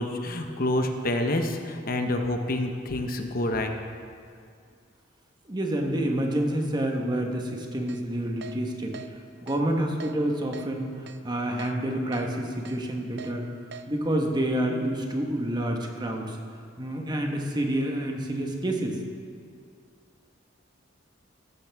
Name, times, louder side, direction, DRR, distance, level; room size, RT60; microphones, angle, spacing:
voice 1, 0.0-3.7, left 1 dB, 50° left, 5 dB, 0.9 m, -27 dB
voice 2, 5.5-9.0 9.4-13.5 13.9-16.4 16.8-19.0, right 1 dB, 20° right, 2 dB, 1.2 m, -28 dB
Keyboard (musical), 7.9-8.0 8.4-8.6 8.9-9.1 9.5-9.6 10.0-10.1 10.5-10.7 11.1-11.2 11.6-11.7 12.1-12.3 12.7-12.8 13.2-13.3 13.7-13.9, right 5 dB, 60° right, 0.6 m, -41 dB
15.0 x 12.0 x 3.5 m, 2.2 s
head